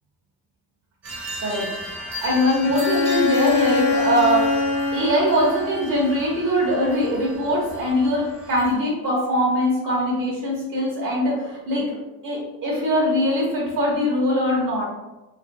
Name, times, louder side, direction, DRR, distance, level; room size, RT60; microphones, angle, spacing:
sound 1, 1.0-8.7, equal, 50° right, 0.8 m, -35 dB
voice 1, 1.4-1.7 2.0-11.9 12.2-14.8, equal, 70° right, -4 dB, 1.1 m, -22 dB
Bowed string instrument, 2.6-6.1, left 4 dB, 90° left, 0.5 m, -23 dB
3.0 x 2.6 x 2.6 m, 1.0 s
cardioid pair, 130°, 33 cm